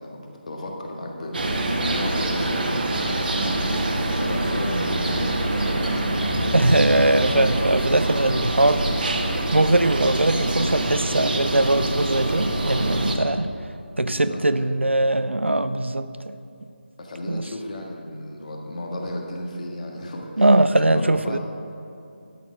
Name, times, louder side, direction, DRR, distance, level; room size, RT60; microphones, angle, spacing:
voice 1, 0.0-6.3 14.0-14.7 17.0-21.4, left 1 dB, 40° left, 1 dB, 1.6 m, -34 dB
sound 1, 1.3-13.1, right 1 dB, 50° right, 1.4 m, -25 dB
voice 2, 6.5-8.8 9.5-13.5 14.0-16.3 17.3-17.5 20.4-21.4, right 1 dB, 85° right, 12 dB, 0.6 m, -21 dB
12.5 x 6.8 x 6.3 m, 2.6 s
figure-of-eight pair, 160°, 6 cm